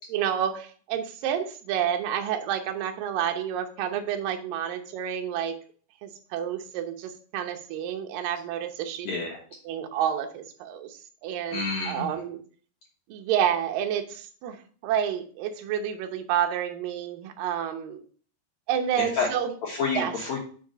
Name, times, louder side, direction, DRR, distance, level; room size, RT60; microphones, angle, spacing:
voice 1, 0.1-5.6 6.0-9.1 9.7-11.0 11.2-12.4 13.1-14.6 14.8-18.0 18.7-19.5 20.0-20.1, right 9 dB, 80° right, 4 dB, 2.0 m, -29 dB
voice 2, 9.0-9.4 11.5-12.1 19.0-19.3 19.6-20.4, left 4 dB, 80° left, -2 dB, 1.6 m, -29 dB
6.2 x 5.2 x 5.1 m, 0.43 s
omnidirectional pair, 5.3 m